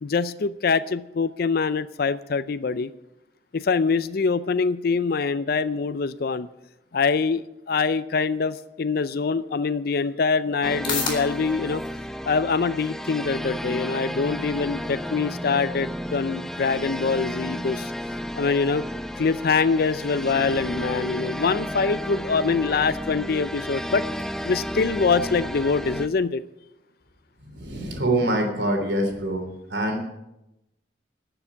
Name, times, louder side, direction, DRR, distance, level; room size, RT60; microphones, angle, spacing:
voice 1, 0.0-2.9 3.5-6.5 6.9-11.8 12.2-17.9 18.4-18.8 19.2-24.0 24.4-26.4, left 4 dB, 60° left, 14 dB, 0.5 m, -24 dB
sound 1, 9.4-26.3, left 4 dB, 30° left, 4.1 m, -42 dB
sound 2, 10.6-26.1, equal, 5° left, 0.5 m, -32 dB
voice 2, 27.5-29.4 29.7-30.0, right 1 dB, 85° right, 3 dB, 3.4 m, -24 dB
13.0 x 6.9 x 9.8 m, 0.90 s
head